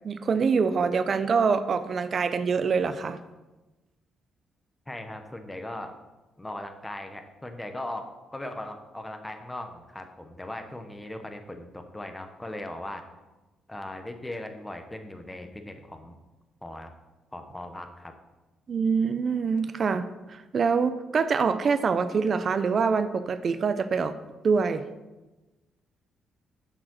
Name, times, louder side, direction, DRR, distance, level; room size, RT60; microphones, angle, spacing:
voice 1, 0.0-3.2 18.7-24.1 24.4-24.9, right 5 dB, 50° right, 11 dB, 0.5 m, -25 dB
voice 2, 4.9-6.0 6.4-13.0 13.7-16.2 16.6-16.9 17.3-18.1, left 1 dB, 10° left, 6 dB, 1.0 m, -38 dB
7.4 x 5.0 x 6.3 m, 1.1 s
cardioid pair, 90°, 0 cm